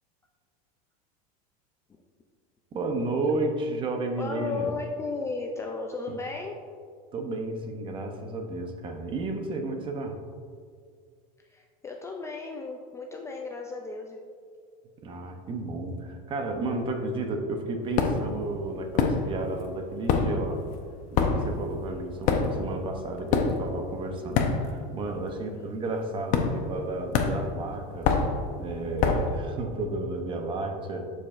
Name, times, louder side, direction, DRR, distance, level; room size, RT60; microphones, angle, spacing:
voice 1, 2.7-4.7 6.1-6.2 7.1-10.2 15.0-20.7 21.1-28.1 28.6-31.1, right 2 dB, 25° right, 5 dB, 0.7 m, -32 dB
voice 2, 4.2-6.6 11.5-14.2 25.5-25.7, left 4 dB, 15° left, 2 dB, 0.3 m, -35 dB
sound 1, 18.0-18.4 18.9-19.6 19.9-25.0 25.2-25.6 26.3-26.8 27.1-29.4, left 5 dB, 45° left, 0.7 m, -26 dB
11.5 x 4.9 x 2.5 m, 2.1 s
supercardioid pair, 140°, 19 cm